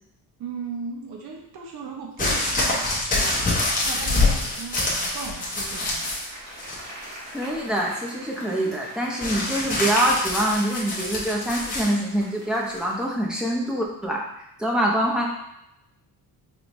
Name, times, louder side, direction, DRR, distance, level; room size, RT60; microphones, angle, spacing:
voice 1, 0.4-6.1, right 5 dB, 80° right, 0 dB, 0.8 m, -37 dB
sound 1, 2.2-6.3 6.6-7.2 9.2-11.9 12.8-12.9, left 2 dB, 20° left, 1.0 m, -25 dB
Applause, 4.5-13.2, right 1 dB, 45° right, 1.4 m, -42 dB
voice 2, 7.3-14.2 14.6-15.3, right 1 dB, ahead, -2 dB, 0.6 m, -25 dB
5.1 x 2.7 x 3.0 m, 0.83 s
cardioid pair, 155°, 37 cm